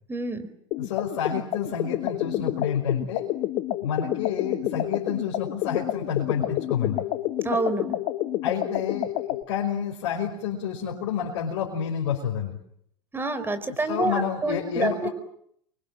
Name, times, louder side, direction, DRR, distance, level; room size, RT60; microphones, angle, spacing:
voice 1, 0.1-0.5 7.4-7.9 13.1-15.1, right 3 dB, 15° right, 10 dB, 4.7 m, -27 dB
sound 1, 0.7-9.4, left 14 dB, 50° left, 1.9 m, -29 dB
voice 2, 0.8-3.3 3.8-7.0 8.4-12.6 13.6-15.1, left 8 dB, 65° left, -2 dB, 5.5 m, -29 dB
29.0 x 24.0 x 7.7 m, 0.70 s
hypercardioid pair, 85°, 15 cm